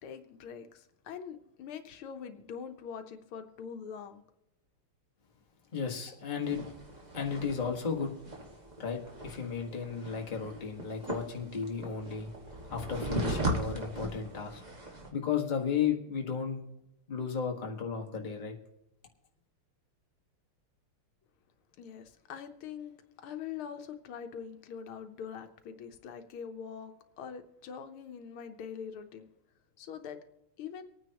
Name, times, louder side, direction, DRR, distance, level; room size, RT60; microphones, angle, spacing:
voice 1, 0.0-4.2 21.8-29.2 29.8-30.2 30.6-30.9, left 7 dB, 80° left, 1.7 m, -43 dB
voice 2, 5.7-6.6 7.1-8.1 8.8-12.3 12.7-14.6 14.9-16.6 17.1-18.5, left 6 dB, 25° left, 1.4 m, -34 dB
sound 1, 6.4-15.1, right 1 dB, 20° right, 1.5 m, -38 dB
25.0 x 9.4 x 2.9 m
omnidirectional pair, 2.3 m